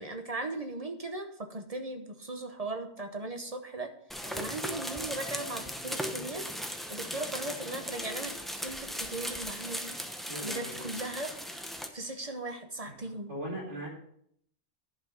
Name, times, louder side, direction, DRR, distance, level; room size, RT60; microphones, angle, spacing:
voice 1, 0.0-3.9 4.3-6.5 6.9-10.0 10.4-11.3 11.9-13.3, right 2 dB, 35° right, 6 dB, 0.9 m, -38 dB
sound 1, 4.1-11.9, equal, ahead, 0.7 m, -38 dB
voice 2, 10.3-10.8 13.3-13.9, right 1 dB, 80° right, -4 dB, 4.2 m, -39 dB
10.5 x 5.9 x 5.3 m, 0.68 s
omnidirectional pair, 1.2 m